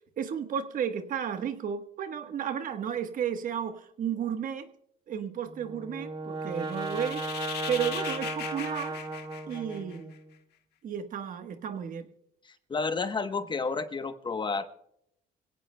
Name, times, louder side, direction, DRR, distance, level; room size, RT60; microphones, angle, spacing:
voice 1, 0.2-4.7 5.1-7.3 7.7-9.0 9.5-10.1 10.8-12.1, right 8 dB, 55° right, 1.2 m, -33 dB
Brass instrument, 5.4-10.2, right 2 dB, 25° right, 2.4 m, -36 dB
sound 1, 6.6-10.2, left 10 dB, 75° left, 1.5 m, -39 dB
voice 2, 12.5-14.7, left 4 dB, 25° left, 1.0 m, -31 dB
25.0 x 17.0 x 2.2 m
cardioid pair, 110°, 17 cm